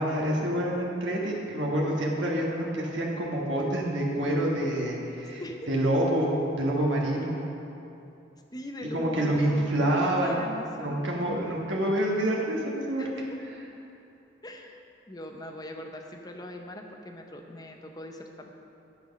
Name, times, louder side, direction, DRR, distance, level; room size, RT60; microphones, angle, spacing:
voice 1, 0.0-5.4 5.7-7.4 8.9-10.4 10.8-13.5, right 1 dB, 85° right, -3 dB, 1.5 m, -27 dB
voice 2, 5.4-5.7 8.5-11.0 13.0-13.2 14.4-18.5, left 1 dB, 20° left, 3 dB, 0.7 m, -41 dB
10.0 x 6.1 x 5.3 m, 2.8 s
head